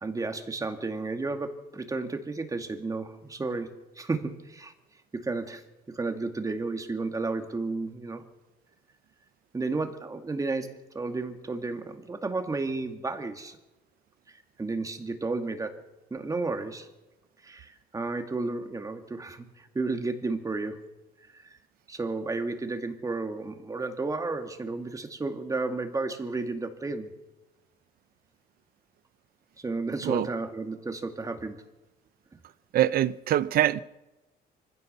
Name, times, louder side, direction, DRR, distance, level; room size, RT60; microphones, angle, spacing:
voice 1, 0.0-4.7 5.1-8.2 9.5-13.6 14.3-15.8 16.1-16.9 17.4-20.9 21.3-21.6 21.9-27.1 29.6-31.6, right 3 dB, 20° right, 2.2 m, -32 dB
voice 2, 32.7-33.8, right 12 dB, 60° right, 0.8 m, -24 dB
24.5 x 16.0 x 6.8 m
cardioid pair, 110°, 17 cm